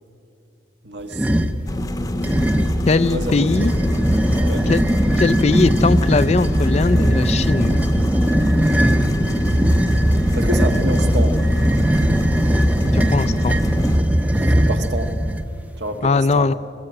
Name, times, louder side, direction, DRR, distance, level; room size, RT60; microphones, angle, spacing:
voice 1, 0.8-1.3 3.1-3.7 4.4-4.7 10.3-11.4 14.3-15.1 15.8-16.5, right 1 dB, 65° right, 6 dB, 1.5 m, -28 dB
sound 1, 1.1-1.6 2.2-2.9 3.5-15.5, equal, 10° right, 0.6 m, -19 dB
sound 2, 1.7-14.0, left 1 dB, 20° left, 0.9 m, -26 dB
voice 2, 2.9-3.7 4.7-4.8 5.2-7.8 12.9-13.6 16.0-16.5, left 3 dB, 35° left, 15 dB, 0.4 m, -19 dB
20.5 x 15.5 x 8.9 m, 2.8 s
head